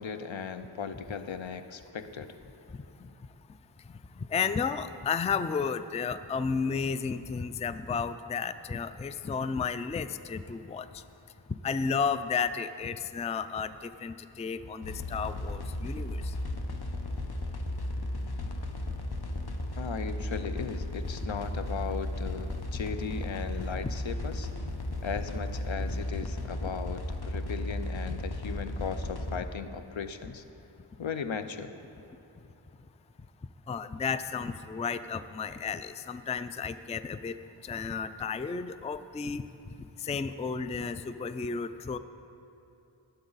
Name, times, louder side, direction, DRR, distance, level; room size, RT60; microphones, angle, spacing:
voice 1, 0.0-2.3 19.8-24.5 25.0-30.4 31.0-31.7, left 6 dB, 75° left, 10 dB, 0.7 m, -37 dB
voice 2, 4.3-10.9 11.6-13.7 14.0-16.2 23.8-23.9 33.7-37.3 37.6-39.4 40.0-42.0, left 5 dB, 15° left, 12 dB, 0.3 m, -32 dB
sound 1, 14.8-29.4, left 1 dB, 55° left, 1.0 m, -35 dB
20.0 x 8.1 x 4.0 m, 3.0 s
wide cardioid pair, 55°, 47 cm